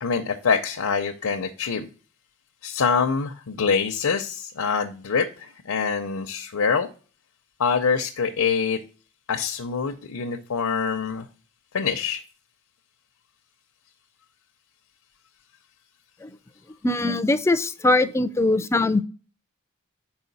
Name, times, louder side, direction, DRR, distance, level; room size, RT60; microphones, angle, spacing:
voice 1, 0.0-1.9 2.6-6.9 7.6-8.8 9.3-11.3 11.7-12.2, left 5 dB, 85° left, 4 dB, 0.6 m, -25 dB
voice 2, 16.8-19.0, left 2 dB, 10° left, 12 dB, 0.3 m, -21 dB
5.6 x 4.4 x 4.0 m, 0.37 s
head